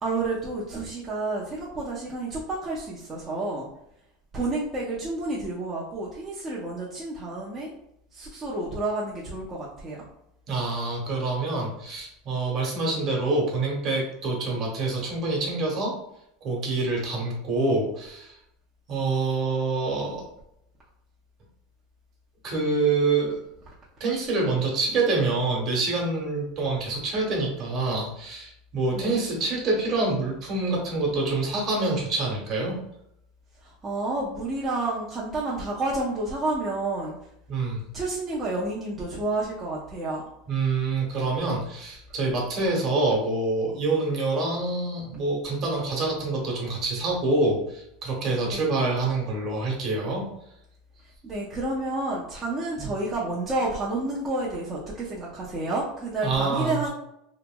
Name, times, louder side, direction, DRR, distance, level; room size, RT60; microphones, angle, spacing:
voice 1, 0.0-3.7 4.3-7.7 8.1-10.0 28.9-29.2 33.6-37.2 37.9-40.3 48.5-48.7 51.2-56.9, right 2 dB, 25° right, -6 dB, 0.6 m, -30 dB
voice 2, 10.5-15.9 16.4-18.4 18.9-20.3 22.4-23.4 24.0-32.8 37.5-37.8 40.5-50.2 52.8-52.9 56.2-56.8, right 3 dB, 40° right, -2 dB, 1.0 m, -26 dB
2.9 x 2.6 x 2.2 m, 0.78 s
supercardioid pair, 130°, 0 cm